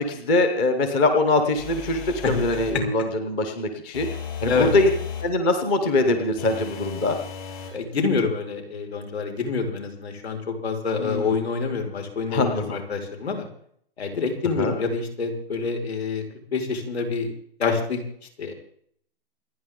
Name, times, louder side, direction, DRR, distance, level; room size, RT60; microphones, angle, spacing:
voice 1, 0.0-4.1 4.4-4.9 5.2-7.2 11.0-11.4 12.3-12.8 14.6-14.8, left 2 dB, 10° left, 6 dB, 0.7 m, -23 dB
sound 1, 1.5-2.8 3.9-5.3 6.4-7.8, left 7 dB, 50° left, 6.7 m, -35 dB
voice 2, 7.7-13.4 14.0-16.2 16.5-17.3 17.6-18.0 18.4-18.5, left 4 dB, 80° left, 3 dB, 5.1 m, -26 dB
28.5 x 9.6 x 3.7 m, 0.62 s
hypercardioid pair, 175°, 31 cm